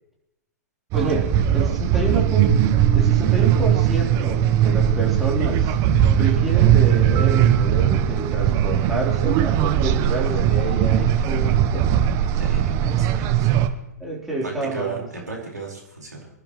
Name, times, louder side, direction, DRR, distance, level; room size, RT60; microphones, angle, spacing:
voice 1, 0.9-2.6 2.9-5.8 6.2-11.9 14.0-15.0, right 3 dB, ahead, -5 dB, 3.8 m, -28 dB
sound 1, 0.9-13.7, right 10 dB, 30° right, 0.9 m, -19 dB
voice 2, 12.4-13.6 14.4-16.3, right 4 dB, 80° right, -1 dB, 4.7 m, -35 dB
25.5 x 12.0 x 3.2 m, 0.88 s
figure-of-eight pair, 110°, 9 cm